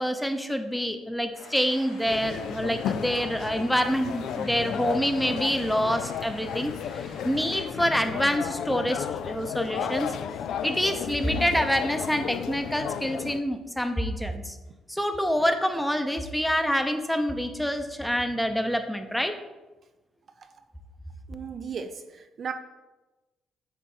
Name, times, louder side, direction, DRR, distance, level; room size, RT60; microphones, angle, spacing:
voice 1, 0.0-10.1 10.6-14.5 14.9-19.3, equal, 5° left, 7 dB, 0.7 m, -27 dB
sound 1, 1.3-7.7, left 2 dB, 85° left, 1.3 m, -47 dB
sound 2, 2.1-13.4, left 8 dB, 70° left, 0.3 m, -33 dB
voice 2, 21.3-22.5, right 6 dB, 50° right, 8 dB, 0.5 m, -35 dB
8.1 x 3.0 x 4.4 m, 1.1 s
supercardioid pair, 70°, 0 cm